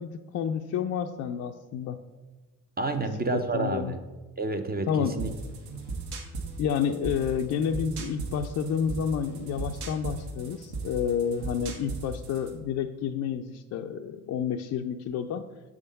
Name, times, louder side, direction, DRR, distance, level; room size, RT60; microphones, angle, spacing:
voice 1, 0.0-2.0 3.3-3.9 4.9-5.2 6.6-15.5, left 7 dB, 40° left, 7 dB, 0.4 m, -30 dB
voice 2, 2.8-4.0 4.4-5.3, right 3 dB, 20° right, 6 dB, 0.5 m, -29 dB
sound 1, 5.2-12.6, right 3 dB, 60° right, 1.2 m, -37 dB
6.6 x 3.6 x 5.2 m, 1.2 s
figure-of-eight pair, 45°, 46 cm